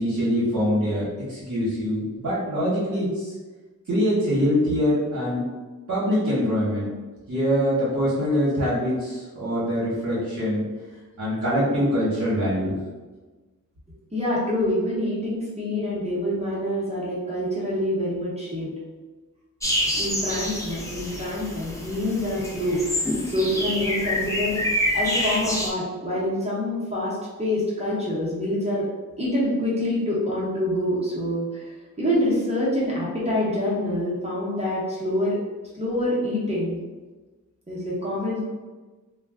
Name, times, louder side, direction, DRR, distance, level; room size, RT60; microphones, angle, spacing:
voice 1, 0.0-3.3 3.9-5.4 5.9-6.9 7.3-10.6 11.2-12.7, equal, 60° right, -9 dB, 0.9 m, -24 dB
voice 2, 14.1-18.7 20.0-22.8 23.2-28.9 29.2-35.4 35.7-36.8 37.7-38.5, left 1 dB, 20° right, -8 dB, 0.8 m, -26 dB
sound 1, 19.6-25.7, equal, 10° left, 0.5 m, -27 dB
2.2 x 2.2 x 3.4 m, 1.3 s
wide cardioid pair, 85°, 32 cm